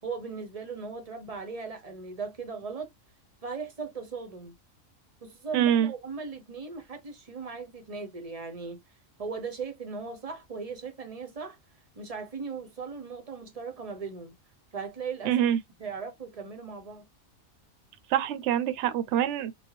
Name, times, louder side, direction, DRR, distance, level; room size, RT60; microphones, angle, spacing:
voice 1, 0.0-2.9 3.4-4.5 5.2-8.8 9.2-11.6 12.0-14.3 14.7-15.4 15.8-17.1, right 5 dB, 35° right, 0.7 m, -38 dB
voice 2, 5.5-5.9 15.2-15.6 18.1-19.5, right 10 dB, 65° right, 0.8 m, -25 dB
3.7 x 2.2 x 3.0 m
omnidirectional pair, 1.4 m